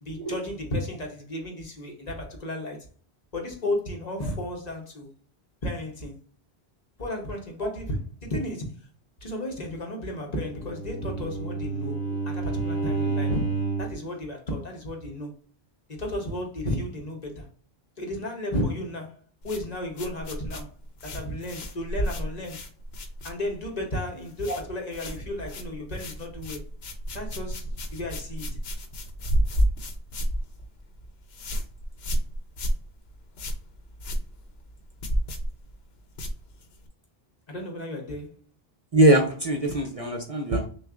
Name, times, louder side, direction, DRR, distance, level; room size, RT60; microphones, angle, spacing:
voice 1, 0.0-2.9 3.3-5.1 5.6-6.2 7.0-8.9 9.2-12.0 12.2-15.3 15.9-17.5 18.0-19.2 19.4-20.7 21.0-22.6 23.2-26.6 27.1-28.6 37.5-38.4, left 1 dB, 45° left, 1.0 m, -33 dB
Bowed string instrument, 10.4-14.1, right 4 dB, 60° left, 1.1 m, -30 dB
sound 1, 19.4-23.8 24.0-24.6 24.9-36.9, equal, 75° left, 1.0 m, -31 dB
voice 2, 38.9-40.7, right 1 dB, 40° right, 0.6 m, -22 dB
6.2 x 2.4 x 2.4 m
omnidirectional pair, 1.0 m